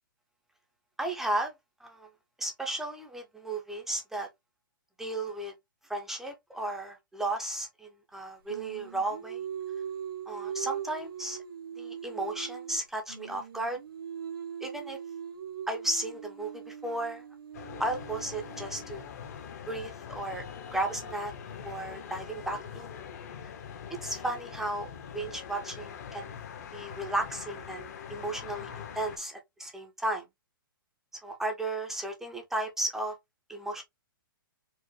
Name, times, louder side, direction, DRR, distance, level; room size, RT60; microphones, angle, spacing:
voice 1, 1.0-1.5 1.8-2.1 2.4-4.3 5.0-5.5 5.9-9.4 10.3-11.4 11.8-13.8 14.6-15.0 15.7-17.2 17.8-19.0 19.7-20.4 20.7-21.3 21.6-22.9 24.0-26.3 26.7-30.2 31.2-33.2 33.5-33.8, right 1 dB, 5° right, 0.4 m, -34 dB
Singing, 8.5-12.8 13.1-19.1, right 8 dB, 90° right, 1.0 m, -41 dB
sound 1, 17.5-29.2, left 7 dB, 45° left, 0.7 m, -43 dB
4.4 x 2.0 x 3.1 m
hypercardioid pair, 160°, 12 cm